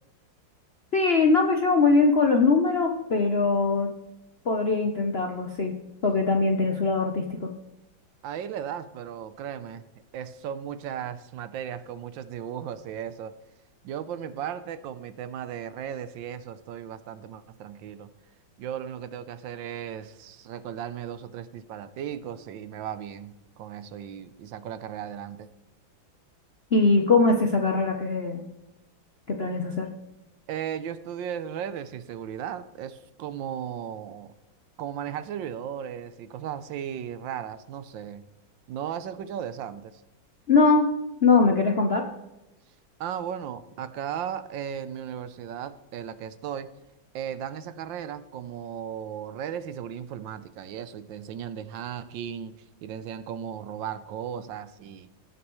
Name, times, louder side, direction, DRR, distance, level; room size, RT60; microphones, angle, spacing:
voice 1, 0.9-3.9 4.5-5.7 6.0-7.5 26.7-28.4 29.3-29.9 40.5-40.9 41.2-42.0, left 3 dB, 55° left, 3 dB, 0.7 m, -21 dB
voice 2, 8.2-9.8 10.1-13.4 13.8-18.1 18.6-25.5 30.5-34.3 34.8-38.3 38.7-40.0 43.0-46.7 47.1-55.1, right 9 dB, 75° right, 13 dB, 1.4 m, -36 dB
18.0 x 6.9 x 3.1 m, 0.97 s
omnidirectional pair, 2.1 m